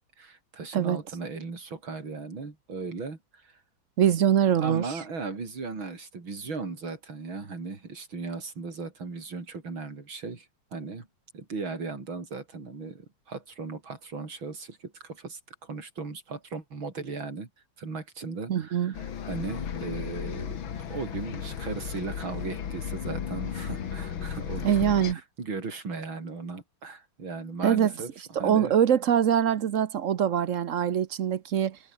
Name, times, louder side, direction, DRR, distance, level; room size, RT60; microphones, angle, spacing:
voice 1, 0.2-3.6 4.6-10.5 10.7-11.1 11.3-17.5 17.8-20.6 20.9-28.8, right 4 dB, 85° right, 5.0 m, -37 dB
voice 2, 4.0-4.8 18.5-19.0 24.6-25.2 27.6-27.9 28.4-31.8, right 9 dB, 55° right, 0.9 m, -23 dB
Bus, 18.9-25.1, left 8 dB, 80° left, 2.5 m, -35 dB
omnidirectional pair, 2.1 m